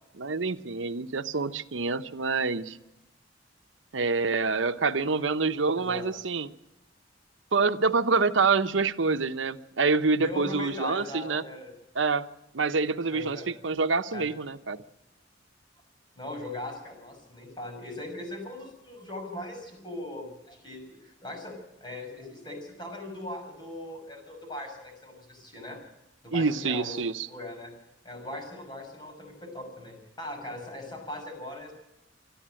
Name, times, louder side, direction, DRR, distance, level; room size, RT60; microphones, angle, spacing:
voice 1, 0.1-2.8 3.9-6.5 7.5-11.4 11.9-12.3 12.5-14.8 26.3-27.3, right 4 dB, 85° right, 10 dB, 0.9 m, -26 dB
voice 2, 5.8-6.1 10.1-11.7 13.1-13.5 14.1-14.3 16.2-21.5 21.8-25.8 26.2-26.9 27.3-27.7 28.0-31.7, left 1 dB, 25° left, 2 dB, 6.3 m, -39 dB
25.5 x 13.0 x 7.7 m, 0.94 s
head